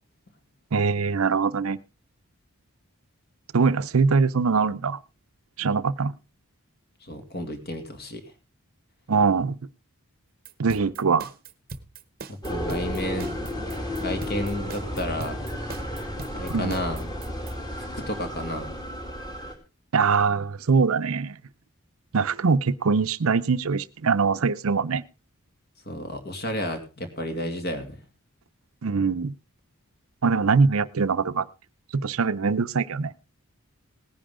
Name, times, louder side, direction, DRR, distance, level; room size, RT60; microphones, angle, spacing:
voice 1, 0.7-1.8 3.5-5.0 5.6-6.1 9.1-9.6 10.6-11.3 16.5-16.7 19.9-21.4 22.1-25.0 28.8-29.3 30.2-31.5 31.9-33.2, right 5 dB, 70° right, 15 dB, 0.6 m, -22 dB
voice 2, 7.0-8.2 12.3-13.3 14.0-15.5 16.3-17.0 17.8-18.7 25.9-28.0, left 1 dB, 45° left, 6 dB, 2.3 m, -32 dB
sound 1, 10.5-17.5, right 3 dB, 40° right, 0.8 m, -40 dB
sound 2, 12.4-19.5, left 1 dB, 20° left, 2.3 m, -33 dB
18.0 x 10.0 x 3.7 m, 0.29 s
head